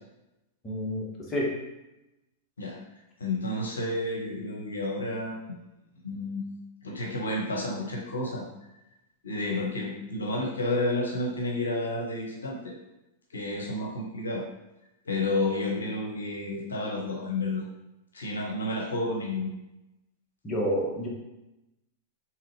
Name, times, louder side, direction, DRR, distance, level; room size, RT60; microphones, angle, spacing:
voice 1, 0.6-1.5 20.4-21.1, equal, 25° left, -3 dB, 1.2 m, -29 dB
voice 2, 3.2-5.6 6.0-6.4 6.8-8.4 9.2-12.7 13.3-14.4 15.0-17.6 18.1-19.5, left 2 dB, 85° left, -1 dB, 0.7 m, -30 dB
3.8 x 2.9 x 3.1 m, 0.94 s
hypercardioid pair, 100°, 0 cm